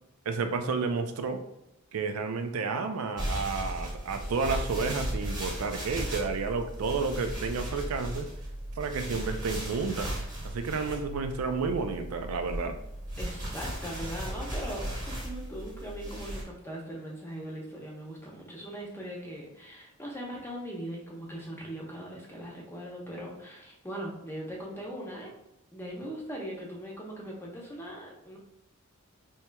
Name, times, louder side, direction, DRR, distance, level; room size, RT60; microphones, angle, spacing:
voice 1, 0.3-1.4 1.9-8.3 8.8-10.1 10.4-12.8, right 4 dB, 85° right, 7 dB, 0.4 m, -31 dB
sound 1, 3.2-16.4, right 1 dB, 20° right, 1.1 m, -36 dB
voice 2, 13.2-25.3 25.7-28.4, equal, 10° left, -2 dB, 0.7 m, -40 dB
4.5 x 2.9 x 2.2 m, 0.85 s
head